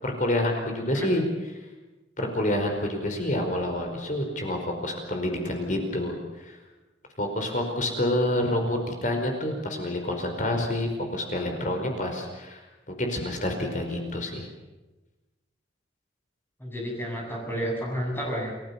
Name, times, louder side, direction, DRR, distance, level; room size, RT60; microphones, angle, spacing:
voice 1, 0.0-1.2 2.2-6.6 7.2-12.6 12.9-14.5, left 1 dB, 40° left, 3 dB, 4.8 m, -28 dB
voice 2, 16.6-18.5, equal, 10° left, -1 dB, 7.8 m, -31 dB
30.0 x 19.5 x 7.1 m, 1.1 s
head